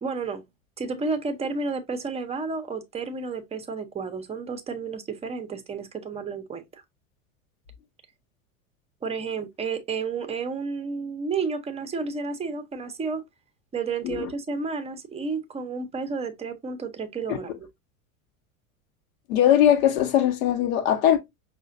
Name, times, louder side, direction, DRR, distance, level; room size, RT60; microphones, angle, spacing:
voice 1, 0.0-0.4 0.8-6.6 9.0-13.2 13.7-17.5, right 4 dB, 15° right, 0.6 m, -31 dB
voice 2, 19.3-21.2, left 10 dB, 75° left, 0.9 m, -20 dB
5.4 x 2.2 x 2.5 m
hypercardioid pair, 95°, 42 cm